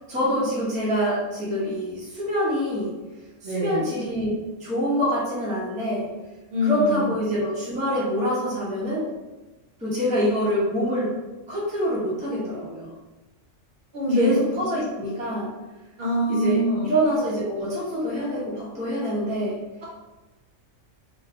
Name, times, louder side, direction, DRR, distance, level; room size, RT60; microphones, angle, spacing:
voice 1, 0.1-2.9 3.4-6.1 6.6-9.0 9.8-11.1 11.5-12.9 14.1-15.5 16.3-19.6, equal, 10° right, -7 dB, 0.5 m, -25 dB
voice 2, 3.4-3.8 6.5-7.2 13.9-14.3 16.0-16.9, equal, 60° right, -5 dB, 0.7 m, -24 dB
2.5 x 2.1 x 2.8 m, 1.1 s
omnidirectional pair, 1.3 m